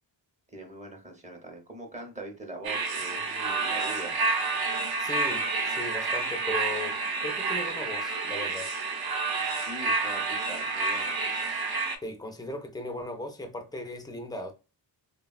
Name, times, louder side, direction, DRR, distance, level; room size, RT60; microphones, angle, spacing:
voice 1, 0.5-4.2 9.5-11.1, right 1 dB, 15° right, 0.7 m, -42 dB
sound 1, 2.6-12.0, right 4 dB, 55° right, 0.5 m, -29 dB
voice 2, 5.0-8.7 12.0-14.5, left 1 dB, 10° left, 0.4 m, -37 dB
3.3 x 2.2 x 2.3 m
wide cardioid pair, 125°, 44 cm